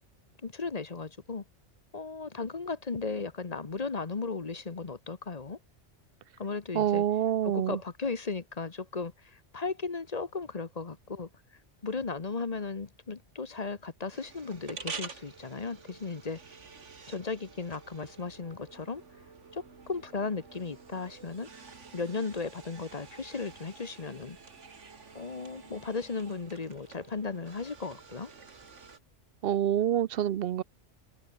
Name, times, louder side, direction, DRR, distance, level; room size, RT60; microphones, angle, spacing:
voice 1, 0.4-1.4 1.9-5.6 6.4-7.0 7.4-11.3 11.8-16.4 17.1-19.0 19.5-21.5 21.9-24.4 25.1-28.3, left 4 dB, 35° left, 1.1 m, -36 dB
voice 2, 6.7-7.8 29.4-30.6, right 10 dB, 60° right, 0.7 m, -27 dB
sound 1, 14.1-29.0, right 5 dB, 85° right, 2.3 m, -48 dB
omnidirectional pair, 1.2 m